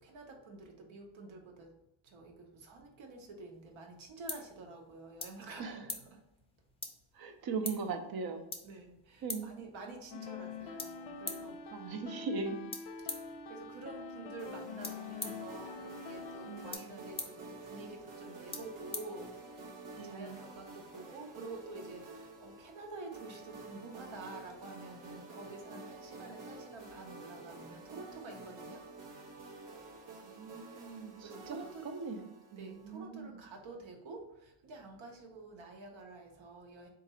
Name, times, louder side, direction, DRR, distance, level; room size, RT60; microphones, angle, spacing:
voice 1, 0.0-1.7 2.0-6.2 8.6-11.6 13.0-28.8 31.2-31.9 32.6-36.9, right 3 dB, 70° right, 3 dB, 1.0 m, -49 dB
sound 1, 3.5-19.8, left 3 dB, 10° left, 0.5 m, -48 dB
voice 2, 7.1-8.4 9.2-9.4 11.7-12.6 16.4-17.0 20.0-20.4 30.3-31.6 31.8-32.2 32.5-33.4, right 4 dB, 45° right, 6 dB, 0.6 m, -39 dB
sound 2, 10.1-16.7, left 4 dB, 60° left, 0.5 m, -45 dB
sound 3, 14.4-33.0, right 2 dB, 90° right, 1.0 m, -50 dB
3.8 x 2.5 x 4.2 m, 0.90 s
cardioid pair, 125°, 50 cm